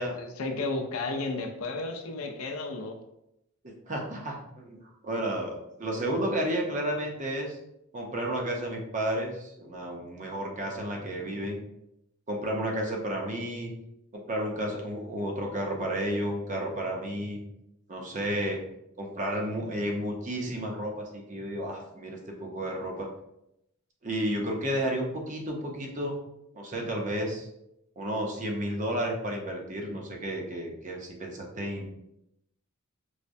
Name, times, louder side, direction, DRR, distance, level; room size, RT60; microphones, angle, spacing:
voice 1, 0.0-3.0, left 3 dB, 70° left, 3 dB, 0.5 m, -33 dB
voice 2, 3.6-7.6 7.9-11.6 12.3-13.7 14.3-17.4 17.9-18.6 19.0-23.1 24.0-26.2 26.5-27.5 28.0-31.8, right 1 dB, 35° right, 1 dB, 0.6 m, -32 dB
4.7 x 2.1 x 2.6 m, 0.82 s
head